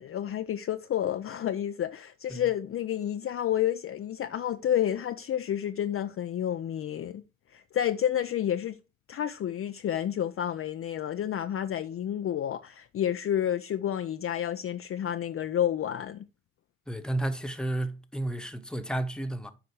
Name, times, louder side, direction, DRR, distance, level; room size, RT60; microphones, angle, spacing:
voice 1, 0.0-7.2 7.5-8.8 9.1-16.2, left 10 dB, 40° left, 0.5 m, -30 dB
voice 2, 16.9-19.5, right 1 dB, ahead, 1.1 m, -32 dB
8.1 x 4.8 x 4.7 m
hypercardioid pair, 50°, 34 cm